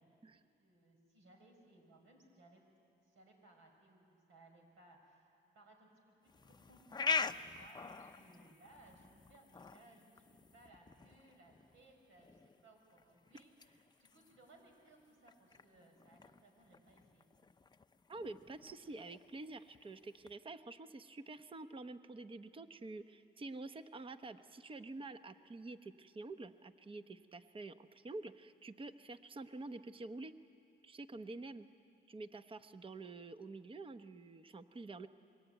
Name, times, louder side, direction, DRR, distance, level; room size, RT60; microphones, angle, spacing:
voice 1, 0.0-2.6 2.9-17.2, right 2 dB, 80° right, 2 dB, 5.8 m, -64 dB
sound 1, 6.3-20.3, left 5 dB, 20° left, 0.7 m, -45 dB
voice 2, 18.1-30.3 30.8-31.7 32.1-35.1, right 2 dB, 25° right, 10 dB, 0.9 m, -48 dB
25.5 x 22.0 x 9.2 m, 2.5 s
cardioid pair, 90°, 20 cm